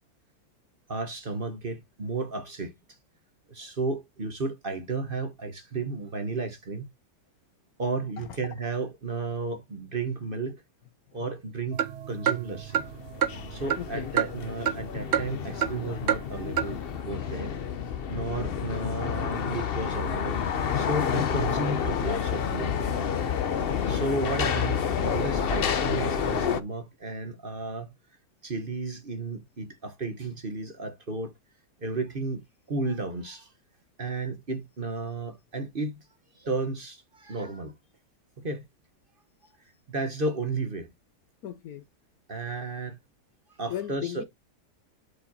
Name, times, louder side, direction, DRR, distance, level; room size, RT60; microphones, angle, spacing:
voice 1, 0.9-2.7 3.5-6.9 7.8-10.6 11.1-12.8 13.5-16.8 17.0-17.5 18.1-20.4 20.7-22.7 23.8-27.9 28.4-31.3 31.8-33.5 34.0-36.0 36.3-37.7 38.4-38.6 39.9-40.9 42.3-43.0 43.6-44.2, right 3 dB, 35° right, 1.2 m, -33 dB
sound 1, 11.7-14.9 15.1-15.8 16.1-16.2 16.6-16.7, right 9 dB, 70° right, 0.6 m, -28 dB
sound 2, 12.7-26.6, left 7 dB, 50° left, 0.7 m, -29 dB
voice 2, 13.8-14.1 41.4-41.8 43.7-44.2, left 11 dB, 65° left, 1.1 m, -36 dB
11.5 x 5.0 x 2.8 m
omnidirectional pair, 1.8 m